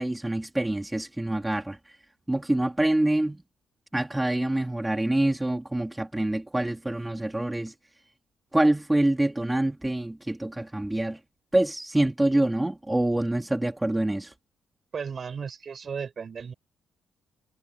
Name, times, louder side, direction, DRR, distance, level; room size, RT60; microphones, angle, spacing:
voice 1, 0.0-2.0 2.3-3.4 3.9-7.7 8.5-11.2 11.5-14.3, right 1 dB, 10° right, 2.6 m, -26 dB
voice 2, 14.9-16.5, right 6 dB, 45° right, 6.3 m, -35 dB
cardioid pair, 90°, 0 cm